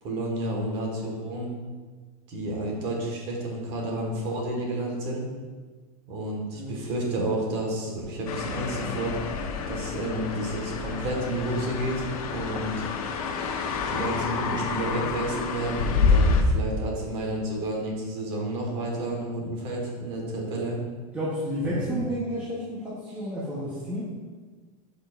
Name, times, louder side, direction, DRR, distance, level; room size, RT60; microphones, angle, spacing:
voice 1, 0.0-1.5 2.3-5.2 6.1-9.2 9.7-12.9 13.9-20.8 21.6-22.0, right 1 dB, 30° right, -1 dB, 1.5 m, -31 dB
voice 2, 6.5-6.8 21.1-24.1, equal, 10° right, -8 dB, 0.9 m, -31 dB
sound 1, 8.3-16.4, left 4 dB, 80° left, 0.9 m, -28 dB
11.0 x 5.1 x 2.5 m, 1.4 s
supercardioid pair, 180°, 19 cm